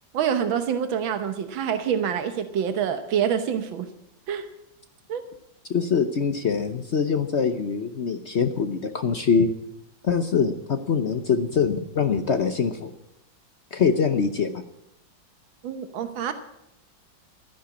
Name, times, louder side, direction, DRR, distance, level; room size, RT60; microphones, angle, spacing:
voice 1, 0.1-3.9 4.3-4.5 5.1-5.2 15.6-16.3, right 8 dB, 90° right, 9 dB, 1.8 m, -26 dB
voice 2, 5.7-9.5 10.0-12.9 13.7-14.6, left 6 dB, 55° left, 8 dB, 0.8 m, -23 dB
13.5 x 10.0 x 8.4 m, 0.84 s
omnidirectional pair, 2.1 m